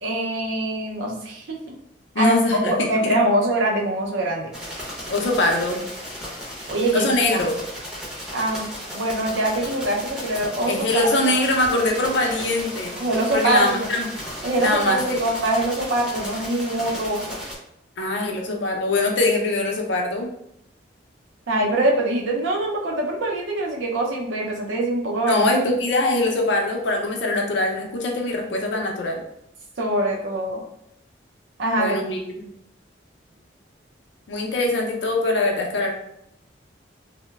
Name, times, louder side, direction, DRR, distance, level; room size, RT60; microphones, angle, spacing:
voice 1, 0.0-1.8 2.2-2.4 2.7-4.5 6.7-7.4 8.3-11.1 13.0-13.9 14.4-17.4 21.5-25.5 29.8-30.6 31.6-32.0, right 1 dB, 85° right, -1 dB, 0.6 m, -23 dB
voice 2, 2.2-3.2 5.1-5.8 6.9-7.6 10.7-13.0 13.3-14.1 14.6-15.2 18.0-20.3 25.3-29.2 31.8-32.4 34.3-35.9, left 2 dB, 75° left, 1 dB, 0.5 m, -22 dB
sound 1, 4.5-17.6, equal, 5° right, 0.5 m, -35 dB
2.9 x 2.0 x 2.3 m, 0.77 s
head